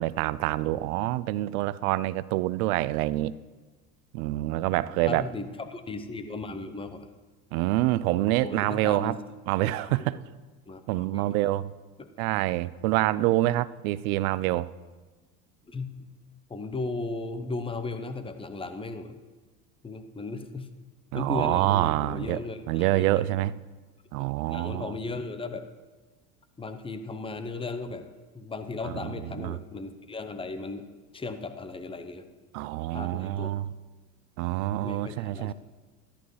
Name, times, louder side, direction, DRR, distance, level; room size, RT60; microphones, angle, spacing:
voice 1, 0.0-3.3 4.1-5.3 7.5-9.2 9.5-10.2 10.9-11.7 12.2-14.7 21.1-22.4 22.7-23.6 24.1-24.9 29.0-29.1 29.4-29.6 32.5-33.7 34.4-35.5, right 16 dB, 65° right, 19 dB, 0.5 m, -26 dB
voice 2, 5.1-7.1 8.4-9.2 9.8-10.2 10.7-11.2 12.0-12.1 15.7-16.1 16.5-19.2 19.8-20.7 21.1-23.1 24.2-25.7 26.6-28.1 28.3-30.9 31.1-32.3 32.9-33.5 34.8-35.5, left 3 dB, 10° left, 9 dB, 0.8 m, -36 dB
13.5 x 11.5 x 3.2 m, 1.3 s
hypercardioid pair, 80°, 46 cm